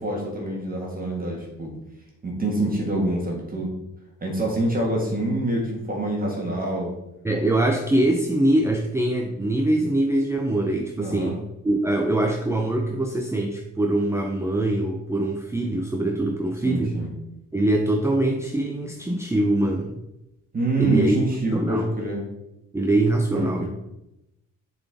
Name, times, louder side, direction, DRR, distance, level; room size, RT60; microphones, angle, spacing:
voice 1, 0.0-1.7 2.2-3.7 4.2-6.9 11.0-11.3 16.6-17.1 20.5-22.2 23.3-23.7, right 1 dB, 30° right, -2 dB, 1.6 m, -26 dB
voice 2, 7.2-11.4 11.6-17.0 17.5-20.0 20.8-21.2 21.5-22.0 22.7-23.7, right 1 dB, 10° right, 3 dB, 0.5 m, -23 dB
6.9 x 4.2 x 3.4 m, 0.89 s
cardioid pair, 90°, 30 cm